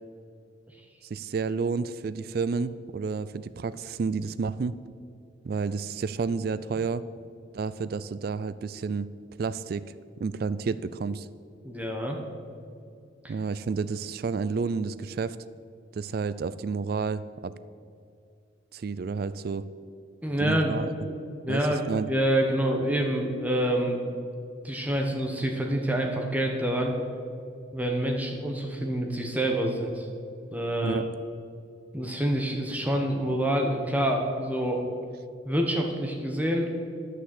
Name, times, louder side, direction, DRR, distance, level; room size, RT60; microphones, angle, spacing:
voice 1, 1.0-4.8 5.4-7.0 7.5-9.1 9.4-9.8 10.2-11.3 13.3-15.4 15.9-17.5 18.7-19.7 20.4-20.9 21.5-22.1 30.8-31.1, right 5 dB, 50° right, 15 dB, 0.3 m, -30 dB
voice 2, 11.6-12.2 13.2-13.3 20.2-20.8 21.4-24.0 24.6-26.9 27.7-30.1 30.5-31.0 31.9-34.8 35.4-36.7, right 1 dB, 10° right, 1 dB, 1.1 m, -27 dB
11.5 x 6.5 x 7.7 m, 2.3 s
head